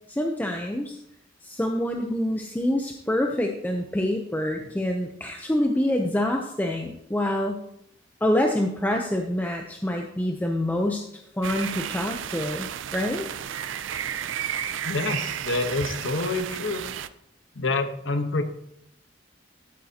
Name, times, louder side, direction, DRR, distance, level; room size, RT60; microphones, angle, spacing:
voice 1, 0.1-1.0 1.4-7.6 8.2-11.1 11.4-13.3, left 1 dB, 10° left, 2 dB, 0.6 m, -26 dB
sound 1, 11.4-17.1, right 9 dB, 90° right, 0.4 m, -32 dB
voice 2, 14.8-16.8 17.5-18.4, left 3 dB, 85° left, 7 dB, 1.0 m, -27 dB
12.0 x 8.9 x 2.8 m, 0.75 s
head